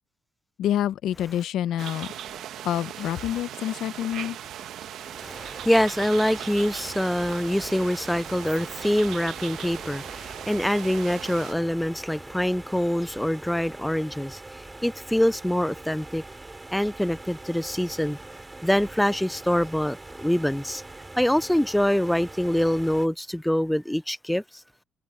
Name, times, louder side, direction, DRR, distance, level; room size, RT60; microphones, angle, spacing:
voice 1, 0.6-2.1 2.6-4.4, left 11 dB, 80° left, 0.8 m, -27 dB
sound 1, 1.8-11.5, right 11 dB, 80° right, 1.2 m, -38 dB
voice 2, 5.0-16.2 16.7-18.2 18.6-20.8 21.2-24.6, left 1 dB, 5° left, 0.5 m, -25 dB
sound 2, 5.2-23.1, right 2 dB, 15° right, 7.8 m, -43 dB
cardioid pair, 90°, 0 cm